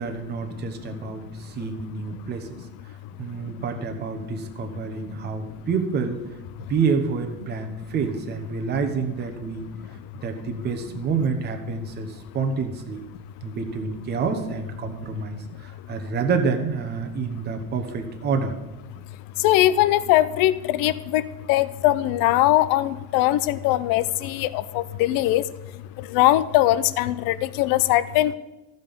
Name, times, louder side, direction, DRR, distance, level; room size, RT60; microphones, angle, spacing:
voice 1, 0.0-2.6 3.1-6.2 6.6-9.6 10.1-13.0 13.4-18.5 19.0-19.1, right 5 dB, 25° right, 6 dB, 1.0 m, -28 dB
voice 2, 19.4-21.2 21.5-25.5 26.0-28.3, left 15 dB, 65° left, 16 dB, 0.6 m, -21 dB
15.0 x 5.4 x 5.4 m, 1.0 s
cardioid pair, 165°, 37 cm